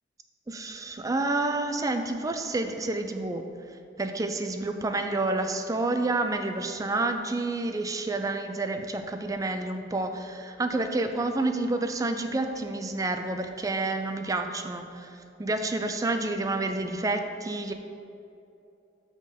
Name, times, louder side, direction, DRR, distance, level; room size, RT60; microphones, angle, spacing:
voice 1, 0.5-3.5 4.0-17.7, right 2 dB, 20° right, 6 dB, 0.4 m, -29 dB
7.5 x 3.8 x 5.1 m, 2.7 s
head